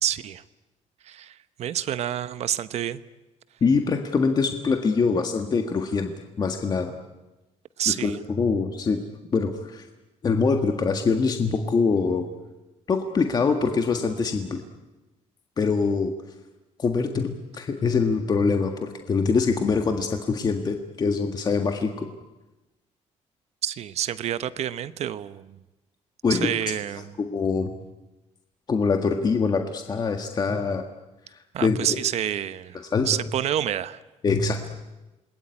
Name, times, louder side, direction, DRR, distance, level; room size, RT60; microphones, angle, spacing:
voice 1, 0.0-0.4 1.0-3.0 7.8-8.2 23.6-25.6 26.3-27.1 31.5-34.0, right 10 dB, 60° right, 14 dB, 0.9 m, -28 dB
voice 2, 3.6-6.1 6.4-6.9 7.9-9.0 9.3-9.9 10.2-12.3 12.9-14.6 15.6-16.1 16.8-22.1 26.2-26.5 27.2-27.7 28.7-30.9 31.3-32.0 32.8-33.2 34.2-34.7, left 4 dB, 30° left, 5 dB, 1.7 m, -24 dB
27.5 x 20.5 x 9.8 m, 1.1 s
cardioid pair, 135°, 13 cm